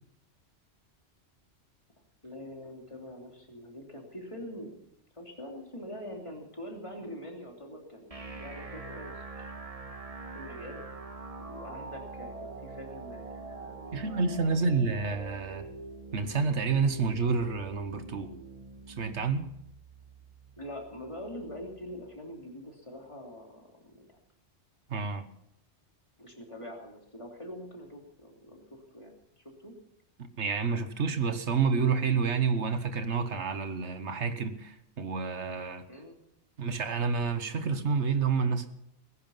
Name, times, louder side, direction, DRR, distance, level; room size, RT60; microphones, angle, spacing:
voice 1, 2.2-4.7 5.1-9.5 10.3-10.8 11.4-14.1 20.6-24.1 26.2-29.7 35.9-36.2, equal, 25° left, 3.1 m, -44 dB
sound 1, 8.1-22.1, right 3 dB, 30° right, 1.5 m, -44 dB
voice 2, 13.9-15.7 16.1-18.3 19.0-19.5 24.9-25.2 30.2-35.8 36.6-38.7, right 5 dB, 80° right, 1.5 m, -29 dB
20.5 x 10.5 x 5.6 m
omnidirectional pair, 1.2 m